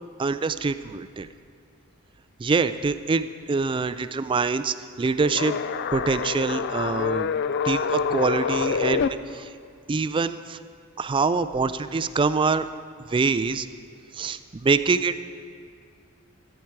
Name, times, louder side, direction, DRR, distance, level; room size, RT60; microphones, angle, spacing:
voice 1, 0.2-1.3 2.4-5.5 5.9-7.3 7.6-9.5 9.9-10.6 11.0-12.7 13.1-13.7 14.1-15.2, right 4 dB, 25° right, 12 dB, 0.3 m, -25 dB
sound 1, 5.2-9.1, left 6 dB, 50° left, 0.4 m, -26 dB
14.0 x 10.0 x 4.7 m, 2.2 s
head